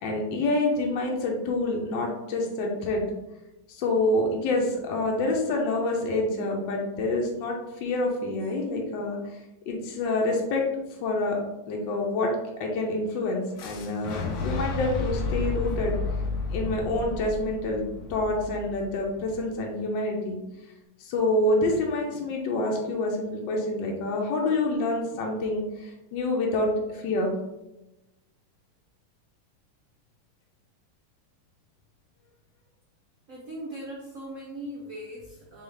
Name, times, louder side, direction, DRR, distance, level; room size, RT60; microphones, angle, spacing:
voice 1, 0.0-3.1 3.7-9.2 9.7-10.6 11.0-11.4 11.7-12.3 12.6-15.9 16.5-17.8 18.1-20.4 21.0-27.3, left 2 dB, 70° left, 0 dB, 1.3 m, -27 dB
Boom, 13.6-19.5, left 3 dB, 90° left, 0.8 m, -32 dB
voice 2, 33.3-35.6, right 1 dB, 75° right, -4 dB, 0.7 m, -39 dB
3.8 x 3.4 x 3.2 m, 0.96 s
omnidirectional pair, 2.3 m